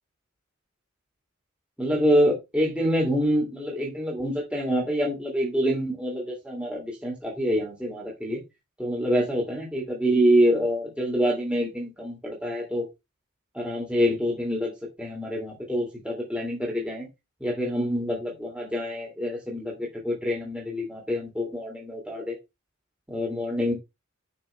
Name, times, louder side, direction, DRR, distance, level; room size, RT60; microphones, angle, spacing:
voice 1, 1.8-8.4 8.8-12.8 13.5-14.7 15.0-17.1 17.4-22.3 23.1-23.7, equal, 5° right, -3 dB, 3.1 m, -26 dB
11.5 x 6.1 x 3.4 m, 0.24 s
head